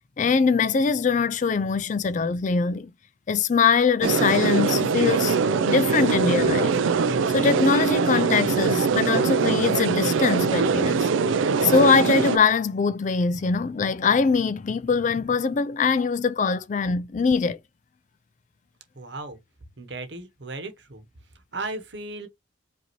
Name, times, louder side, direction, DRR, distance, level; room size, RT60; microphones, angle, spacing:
voice 1, 0.2-2.9 3.3-5.4 5.6-6.7 7.3-11.1 11.6-17.6, left 5 dB, 40° left, 0.3 m, -22 dB
sound 1, 4.0-12.4, right 5 dB, 90° right, 0.4 m, -22 dB
voice 2, 18.9-19.4 19.8-21.0 21.3-22.3, right 2 dB, 65° right, 1.1 m, -36 dB
5.1 x 2.7 x 3.0 m
head